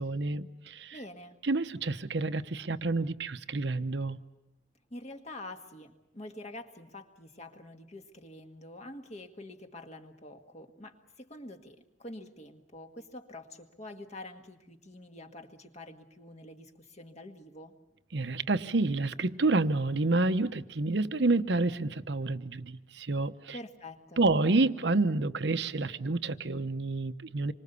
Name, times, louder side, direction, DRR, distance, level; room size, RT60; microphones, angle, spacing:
voice 1, 0.0-1.0 1.4-4.2 18.1-23.6 24.2-27.5, right 3 dB, 70° right, 11 dB, 0.9 m, -29 dB
voice 2, 0.9-1.4 4.9-17.8 23.5-24.2, left 1 dB, 35° left, 5 dB, 1.8 m, -46 dB
27.0 x 24.0 x 6.9 m, 0.96 s
head